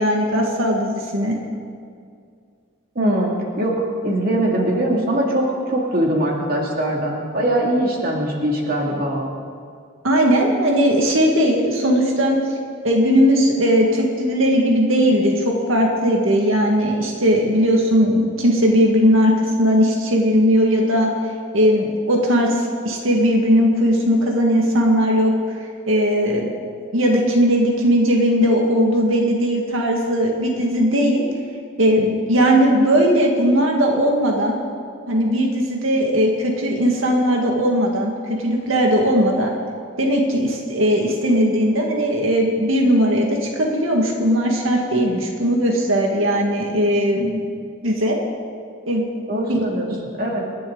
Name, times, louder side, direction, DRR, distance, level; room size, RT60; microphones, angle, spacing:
voice 1, 0.0-1.3 10.0-12.5 12.8-19.3 19.6-21.1 21.5-25.3 25.9-26.5 26.9-31.3 31.8-34.6 35.1-38.1 38.4-39.5 40.0-47.4 47.8-48.2 48.9-49.0 49.5-49.7, equal, 80° right, 0 dB, 2.0 m, -18 dB
voice 2, 3.0-3.7 4.0-5.4 5.7-9.3 49.3-49.9 50.2-50.4, right 1 dB, 45° right, -2 dB, 2.6 m, -21 dB
29.0 x 11.5 x 4.0 m, 2.2 s
head